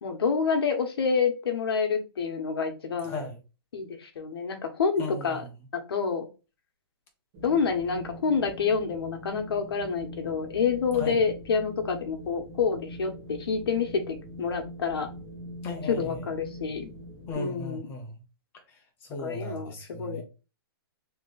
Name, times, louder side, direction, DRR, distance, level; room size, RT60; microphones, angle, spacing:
voice 1, 0.0-3.2 3.7-5.4 5.9-6.3 7.4-15.1 15.8-16.9 17.3-17.9 19.2-20.2, left 5 dB, 75° left, 1.2 m, -28 dB
voice 2, 3.0-3.4 5.0-5.5 10.9-11.2 15.6-16.2 17.3-18.2 19.1-20.2, left 2 dB, 15° left, 0.9 m, -36 dB
Wind, 7.3-17.3, equal, 30° right, 1.9 m, -43 dB
3.2 x 3.2 x 4.0 m
hypercardioid pair, 170°, 13 cm